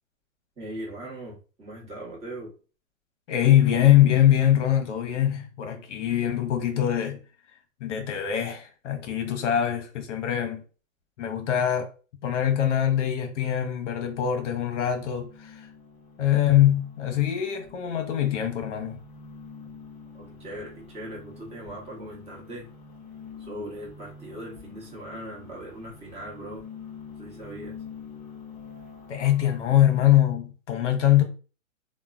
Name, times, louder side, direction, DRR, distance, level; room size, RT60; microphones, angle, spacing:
voice 1, 0.6-2.5 20.1-22.7 23.4-26.6 27.2-27.7, right 1 dB, 15° right, 0.9 m, -39 dB
voice 2, 3.3-7.2 7.8-10.6 11.2-11.9 12.2-15.7 16.2-19.0 29.1-31.2, left 11 dB, 60° left, 0.7 m, -23 dB
sound 1, 13.8-30.2, left 5 dB, 20° left, 0.5 m, -46 dB
3.0 x 2.1 x 2.3 m
hypercardioid pair, 130°, 41 cm